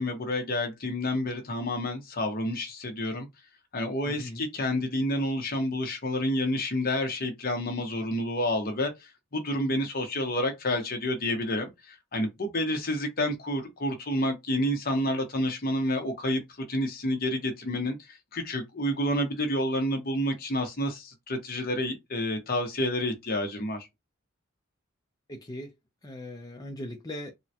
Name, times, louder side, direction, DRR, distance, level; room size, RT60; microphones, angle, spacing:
voice 1, 0.0-3.3 3.7-18.0 18.3-23.9, left 1 dB, 45° left, 0.9 m, -29 dB
voice 2, 4.0-4.4 25.3-25.7 26.0-27.3, left 1 dB, 20° left, 0.5 m, -39 dB
3.7 x 2.1 x 2.8 m
head